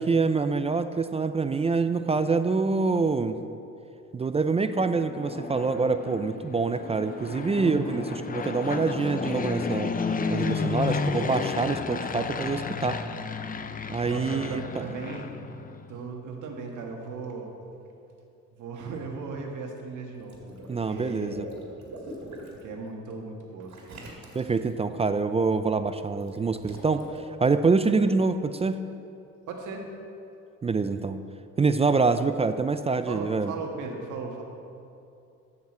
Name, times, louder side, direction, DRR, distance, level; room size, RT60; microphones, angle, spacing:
voice 1, 0.0-3.4 4.1-9.9 10.3-13.0 13.9-14.6 20.7-21.4 24.3-27.0 27.4-28.8 30.6-31.2 31.6-33.5, right 4 dB, 20° right, 10 dB, 0.3 m, -25 dB
Fixed-wing aircraft airplane, 4.8-15.9, left 5 dB, 30° left, 0.5 m, -32 dB
voice 2, 7.5-8.0 14.0-15.4 15.9-17.5 18.5-21.4 22.6-23.7 29.5-29.9 33.1-34.4, right 4 dB, 80° right, 1 dB, 1.5 m, -37 dB
Water / Liquid, 20.1-22.6 23.7-24.7 26.2-27.2, right 2 dB, 65° right, 2.2 m, -43 dB
13.5 x 6.0 x 4.4 m, 2.6 s
cardioid pair, 90°, 30 cm